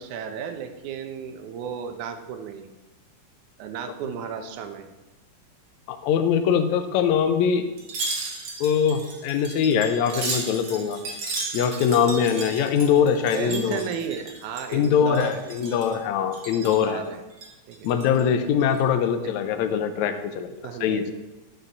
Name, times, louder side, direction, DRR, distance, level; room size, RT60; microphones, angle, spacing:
voice 1, 0.0-2.7 3.6-4.9 13.3-15.4 16.7-17.2 17.7-17.9 19.2-19.3 20.6-21.1, right 7 dB, 75° right, 6 dB, 2.1 m, -33 dB
voice 2, 5.9-7.7 8.6-11.0 11.5-13.8 14.7-17.0 17.8-20.5 20.8-21.1, left 7 dB, 75° left, 7 dB, 1.9 m, -22 dB
Wind chime, 7.8-14.9 15.1-16.0 16.3-16.9 17.3-18.2 18.6-18.8, right 3 dB, 50° right, 1.8 m, -34 dB
11.0 x 6.2 x 4.0 m, 1.1 s
omnidirectional pair, 3.8 m